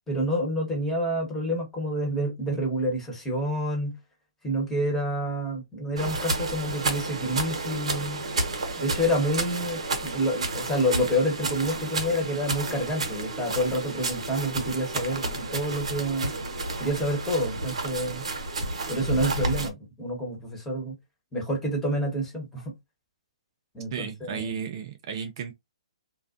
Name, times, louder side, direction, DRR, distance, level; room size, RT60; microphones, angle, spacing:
voice 1, 0.1-4.0 4.4-8.3 8.8-16.3 16.8-18.2 18.9-21.0 21.3-22.7 23.7-24.6, equal, 10° left, 1.1 m, -28 dB
sound 1, 6.0-19.7, right 2 dB, 75° right, 0.8 m, -31 dB
voice 2, 23.9-25.5, right 7 dB, 50° right, 0.4 m, -34 dB
2.4 x 2.1 x 2.4 m
hypercardioid pair, 135°, 3 cm